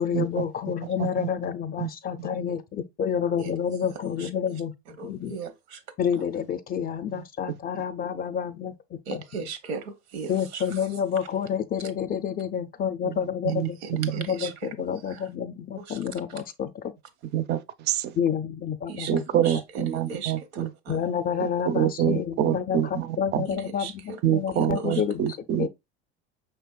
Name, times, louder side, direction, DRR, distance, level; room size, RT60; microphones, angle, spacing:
voice 1, 0.0-4.7 5.0-5.3 6.0-9.5 10.3-16.7 18.2-19.2 20.9-25.2 25.6-25.7, left 8 dB, 30° left, 0.4 m, -29 dB
voice 2, 5.0-5.8 9.1-10.6 13.8-14.7 15.1-15.2 15.8-16.0 18.9-19.8 20.1-21.0 23.5-24.2 24.5-25.0, right 5 dB, 80° right, 0.8 m, -37 dB
voice 3, 13.0-14.3 17.3-18.2 19.1-20.7 21.4-23.4 24.2-25.7, right 11 dB, 35° right, 0.4 m, -26 dB
5.2 x 3.3 x 2.2 m
supercardioid pair, 95°, 32 cm